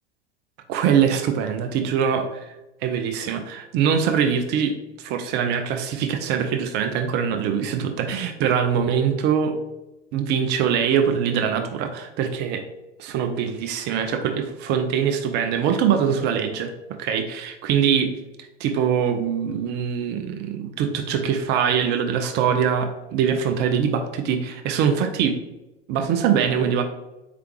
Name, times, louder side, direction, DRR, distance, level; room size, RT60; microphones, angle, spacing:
voice 1, 0.7-2.4 2.8-9.6 10.1-12.6 13.0-16.7 17.0-18.1 18.6-25.4 25.9-26.8, right 7 dB, 30° right, 5 dB, 0.4 m, -23 dB
4.5 x 3.3 x 3.1 m, 0.97 s
figure-of-eight pair, 80°, 33 cm